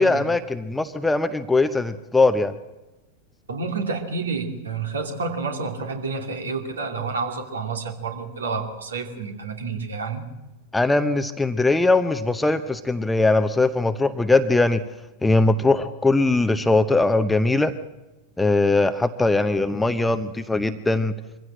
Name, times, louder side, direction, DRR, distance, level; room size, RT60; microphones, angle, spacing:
voice 1, 0.0-2.5 10.7-14.8 15.2-17.7 18.4-21.1, left 2 dB, 5° left, 9 dB, 0.8 m, -20 dB
voice 2, 3.5-10.2, right 4 dB, 70° right, 5 dB, 2.7 m, -29 dB
24.0 x 15.5 x 7.6 m, 1.1 s
figure-of-eight pair, 90°, 0 cm